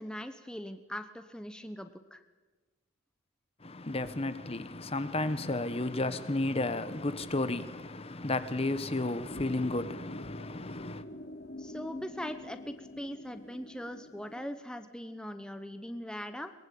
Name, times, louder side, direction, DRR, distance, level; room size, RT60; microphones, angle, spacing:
voice 1, 0.0-2.2 11.6-16.5, equal, 5° left, 0.9 m, -41 dB
voice 2, 3.6-11.0, left 2 dB, 30° left, 1.0 m, -33 dB
sound 1, 9.3-14.6, left 1 dB, 50° left, 3.3 m, -46 dB
23.0 x 22.0 x 8.5 m
head